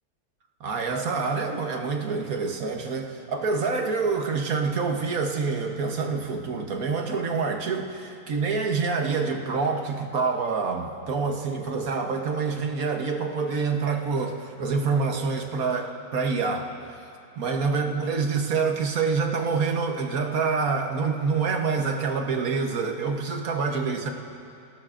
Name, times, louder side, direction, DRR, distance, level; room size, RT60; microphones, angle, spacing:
voice 1, 0.6-17.0 17.4-24.1, right 4 dB, 65° right, 3 dB, 1.5 m, -26 dB
28.0 x 17.5 x 2.5 m, 2.6 s
omnidirectional pair, 1.7 m